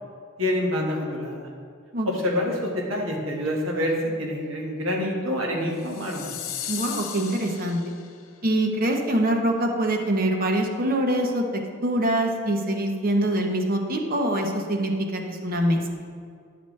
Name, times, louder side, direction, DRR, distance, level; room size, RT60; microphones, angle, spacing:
voice 1, 0.4-1.5 2.0-6.3, left 1 dB, 85° right, -1 dB, 1.6 m, -27 dB
sound 1, 5.8-8.3, left 10 dB, 80° left, 0.7 m, -36 dB
voice 2, 6.7-7.8 8.4-11.4 11.8-15.8, right 1 dB, 45° right, 3 dB, 0.8 m, -24 dB
11.0 x 6.0 x 3.2 m, 2.2 s
head